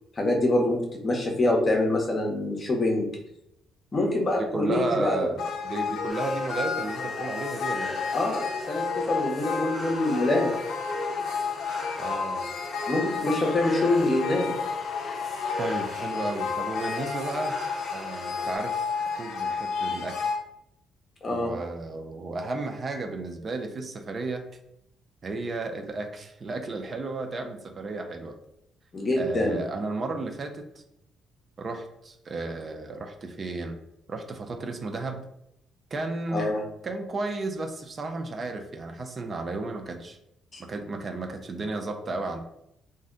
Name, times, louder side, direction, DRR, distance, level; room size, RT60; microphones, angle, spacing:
voice 1, 0.2-3.1 3.9-5.3 8.1-10.5 12.9-14.5 21.2-21.5 28.9-29.7 36.3-36.6 40.5-40.6, left 2 dB, 35° left, 1 dB, 0.7 m, -25 dB
voice 2, 4.4-8.0 12.0-12.5 15.6-17.7 17.9-18.9 19.2-20.3 21.3-24.5 25.2-28.4 29.2-30.6 31.6-33.8 34.1-35.2 35.9-36.5 36.8-40.2 40.6-42.4, right 3 dB, 40° right, 4 dB, 0.4 m, -33 dB
sound 1, 5.4-20.4, left 5 dB, 75° left, 0.4 m, -31 dB
sound 2, 6.1-18.6, equal, 10° left, 0.9 m, -41 dB
2.5 x 2.1 x 3.7 m, 0.78 s
cardioid pair, 95°, 0 cm